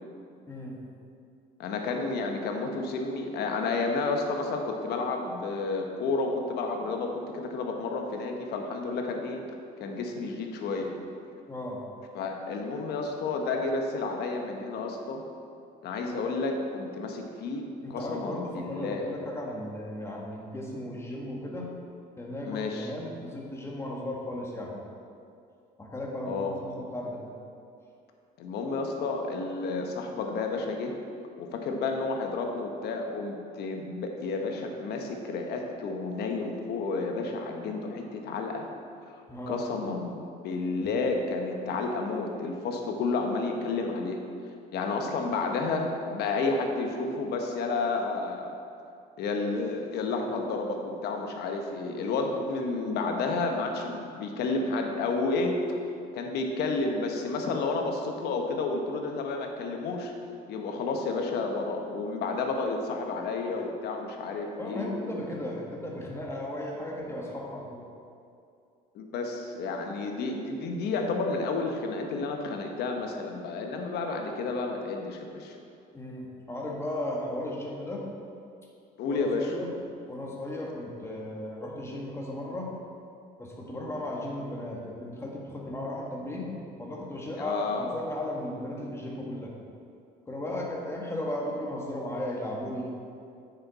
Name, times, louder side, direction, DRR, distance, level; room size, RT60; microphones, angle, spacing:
voice 1, 0.5-0.8 11.5-11.8 17.8-21.7 22.2-24.7 25.8-27.2 39.3-40.0 52.4-52.5 64.6-67.8 75.9-78.0 79.1-79.7 80.1-82.8 83.4-89.5 90.3-92.9, left 1 dB, 15° left, -2 dB, 1.6 m, -36 dB
voice 2, 1.6-9.4 9.8-10.9 12.1-15.2 15.8-19.1 22.4-22.9 26.2-26.5 28.4-30.9 31.4-38.7 39.1-44.2 44.4-48.5 49.2-55.6 56.1-60.1 60.5-65.2 68.9-75.6 79.0-79.5 87.4-87.9, left 3 dB, 75° left, 3 dB, 1.1 m, -31 dB
9.1 x 6.6 x 4.2 m, 2.5 s
cardioid pair, 110°, 17 cm